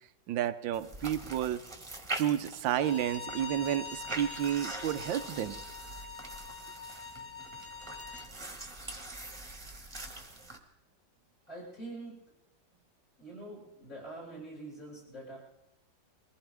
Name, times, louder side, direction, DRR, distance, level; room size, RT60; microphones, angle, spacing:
voice 1, 0.3-1.6 2.1-5.5, right 11 dB, 85° right, 12 dB, 1.5 m, -31 dB
sound 1, 0.7-10.6, right 2 dB, 15° right, 1.5 m, -43 dB
Bowed string instrument, 2.7-8.3, left 4 dB, 5° left, 1.6 m, -44 dB
voice 2, 11.5-12.1 13.2-15.4, right 2 dB, 45° left, -6 dB, 7.1 m, -44 dB
22.5 x 16.0 x 3.5 m, 0.89 s
omnidirectional pair, 2.0 m